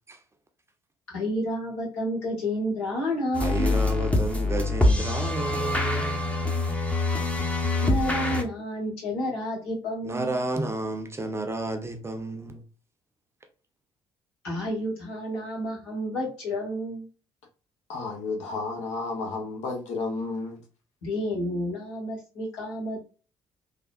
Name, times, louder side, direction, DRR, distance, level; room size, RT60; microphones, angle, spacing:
voice 1, 1.1-3.8 7.8-10.4 14.4-17.1 21.0-23.0, equal, 80° left, 1.4 m, -30 dB
sound 1, 3.3-8.4, left 2 dB, 10° left, 0.8 m, -25 dB
voice 2, 3.4-6.3 10.0-12.6, right 2 dB, 20° right, 0.7 m, -31 dB
voice 3, 17.9-20.6, left 3 dB, 60° left, 0.8 m, -32 dB
3.5 x 2.3 x 2.4 m
hypercardioid pair, 50°, 13 cm